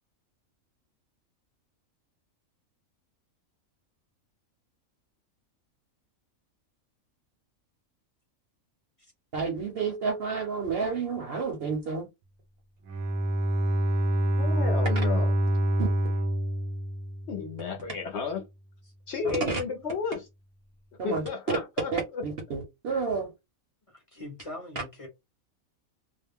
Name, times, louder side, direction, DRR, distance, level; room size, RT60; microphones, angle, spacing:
voice 1, 9.3-12.1 15.8-15.9 19.2-19.6 21.0-21.3 21.9-23.3, right 5 dB, 55° right, 0.8 m, -30 dB
Bowed string instrument, 12.9-17.6, equal, 85° right, 1.1 m, -26 dB
voice 2, 14.3-15.3 17.3-18.4 19.1-20.2 21.0-22.2, left 5 dB, 65° left, 0.8 m, -33 dB
voice 3, 23.9-25.1, left 1 dB, 30° left, 0.7 m, -43 dB
2.5 x 2.1 x 3.4 m
omnidirectional pair, 1.5 m